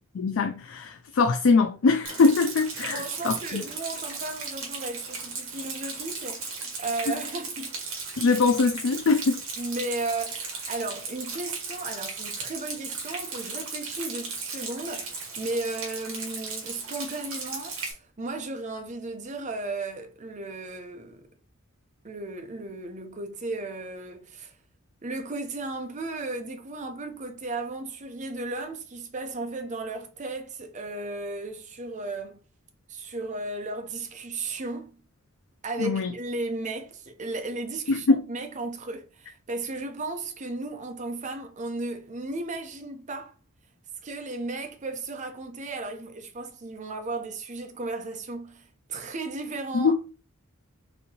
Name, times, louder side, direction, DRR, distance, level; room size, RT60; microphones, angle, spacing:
voice 1, 0.1-3.6 7.1-7.2 8.2-9.4 35.8-36.1 37.9-38.2 49.7-49.9, left 4 dB, 65° left, 0.4 m, -22 dB
Rain, 2.0-17.9, right 4 dB, 70° right, 1.4 m, -36 dB
voice 2, 2.9-7.8 9.6-21.3 22.0-24.5 25.0-32.4 32.9-35.0 35.6-43.3 44.0-49.9, right 2 dB, 35° right, 0.6 m, -35 dB
4.2 x 2.7 x 2.8 m
head